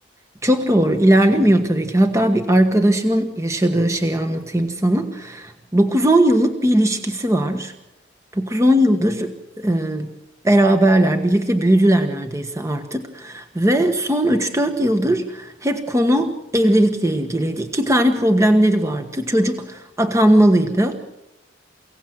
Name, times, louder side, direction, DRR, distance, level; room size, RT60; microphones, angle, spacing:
voice 1, 0.4-7.7 8.3-9.3 9.6-10.1 10.4-21.0, right 1 dB, 15° right, 6 dB, 1.3 m, -18 dB
29.0 x 17.5 x 7.9 m, 0.97 s
head